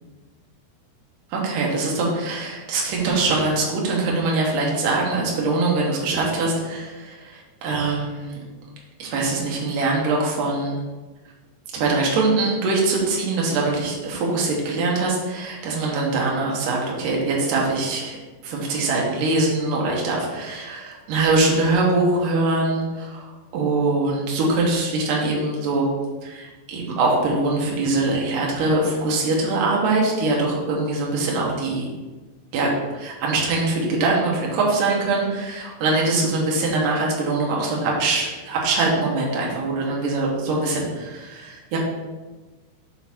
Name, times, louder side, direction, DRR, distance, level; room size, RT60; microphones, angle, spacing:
voice 1, 1.3-8.4 9.0-10.8 11.7-18.2 18.4-25.9 26.2-31.9 32.5-41.8, right 3 dB, 75° right, -3 dB, 2.0 m, -23 dB
7.3 x 3.9 x 4.4 m, 1.3 s
omnidirectional pair, 5.5 m